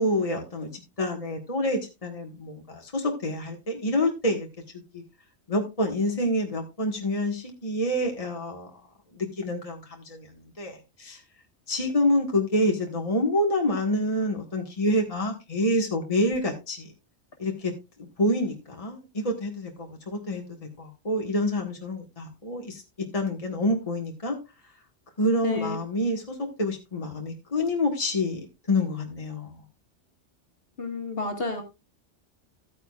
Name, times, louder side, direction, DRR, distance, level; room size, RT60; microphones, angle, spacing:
voice 1, 0.0-4.5 4.9-5.0 5.5-8.7 9.1-10.3 10.6-11.2 11.7-16.9 17.4-17.7 18.2-22.8 23.1-24.4 25.2-29.6, left 1 dB, 30° left, 1 dB, 1.8 m, -27 dB
voice 2, 25.4-25.8 30.8-31.6, left 3 dB, 55° left, 4 dB, 2.2 m, -30 dB
14.0 x 9.1 x 2.4 m, 0.25 s
omnidirectional pair, 1.2 m